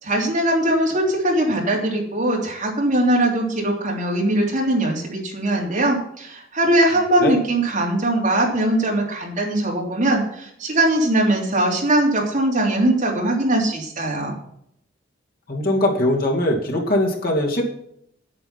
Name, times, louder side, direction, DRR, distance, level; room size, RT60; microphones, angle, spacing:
voice 1, 0.0-14.4, right 1 dB, 45° right, -1 dB, 3.1 m, -21 dB
voice 2, 15.5-17.6, left 1 dB, 55° left, -1 dB, 2.4 m, -21 dB
9.1 x 8.8 x 5.7 m, 0.71 s
head